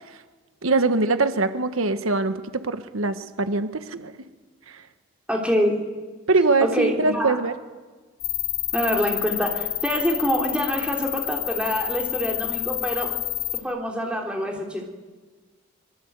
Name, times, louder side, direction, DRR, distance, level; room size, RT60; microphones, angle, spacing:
voice 1, 0.6-4.1 4.7-4.8 6.3-7.5, right 3 dB, 85° right, 10 dB, 1.2 m, -23 dB
voice 2, 5.3-5.8 6.6-7.4 8.7-13.2 13.6-14.9, equal, 5° right, 1 dB, 3.4 m, -25 dB
sound 1, 8.2-13.6, left 16 dB, 40° left, 1.9 m, -29 dB
24.0 x 22.5 x 8.2 m, 1.4 s
head